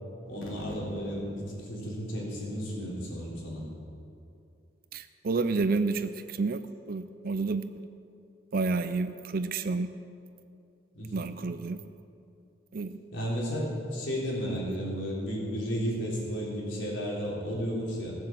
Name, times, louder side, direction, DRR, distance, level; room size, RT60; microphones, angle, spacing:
voice 1, 0.2-3.7 10.9-11.3 13.1-18.1, equal, 80° left, -4 dB, 3.8 m, -33 dB
voice 2, 4.9-6.6 6.9-7.9 8.5-9.9 11.1-11.8 12.7-13.0, right 3 dB, 50° right, 10 dB, 0.5 m, -30 dB
17.0 x 7.7 x 7.4 m, 2.5 s
head